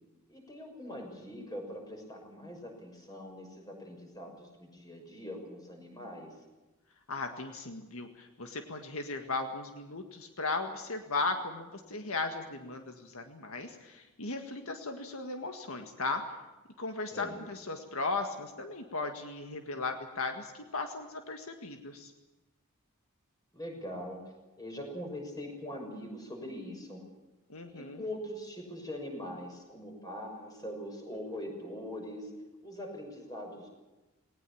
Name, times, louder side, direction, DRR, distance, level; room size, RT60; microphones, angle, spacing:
voice 1, 0.3-6.3 17.1-17.4 23.5-24.2 24.6-27.0 27.7-32.3 32.6-33.7, equal, 15° left, 2 dB, 6.4 m, -42 dB
voice 2, 7.1-16.3 16.8-22.1 27.5-28.0, left 3 dB, 70° left, 5 dB, 1.9 m, -37 dB
20.5 x 19.0 x 8.7 m, 1.1 s
head